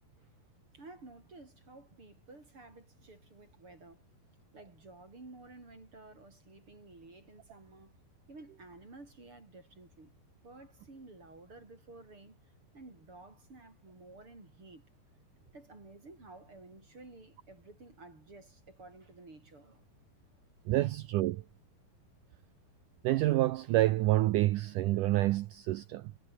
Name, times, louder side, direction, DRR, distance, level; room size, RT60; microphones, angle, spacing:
voice 1, 0.7-4.1 4.5-7.9 8.3-10.1 10.4-12.4 12.7-14.8 15.5-19.8 20.8-20.9, right 3 dB, 30° right, 6.5 m, -53 dB
voice 2, 20.7-21.4 23.0-26.1, right 16 dB, 90° right, 1.8 m, -28 dB
omnidirectional pair, 4.6 m